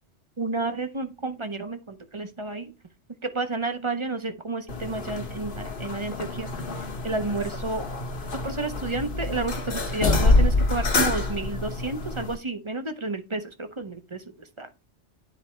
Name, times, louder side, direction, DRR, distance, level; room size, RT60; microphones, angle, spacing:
voice 1, 0.4-2.7 3.3-6.5 7.0-7.8 8.4-14.2 14.6-14.7, right 3 dB, 30° right, 8 dB, 0.8 m, -31 dB
sound 1, 4.7-12.4, left 2 dB, 50° left, 1.3 m, -26 dB
10.0 x 4.1 x 3.3 m, 0.27 s
omnidirectional pair, 1.2 m